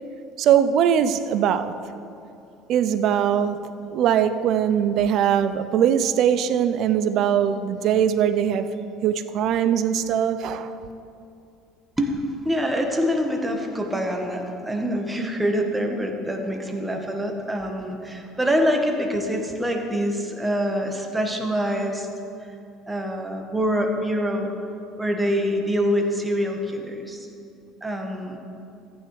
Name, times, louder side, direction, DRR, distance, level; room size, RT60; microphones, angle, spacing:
voice 1, 0.4-1.8 2.7-8.7 9.0-10.7, right 9 dB, 55° right, 0.5 m, -21 dB
voice 2, 12.0-22.1 22.4-22.5 22.9-24.5 25.0-27.3 27.8-28.4, equal, 15° right, 1.4 m, -25 dB
14.5 x 9.1 x 3.3 m
hypercardioid pair, 60°, 0 cm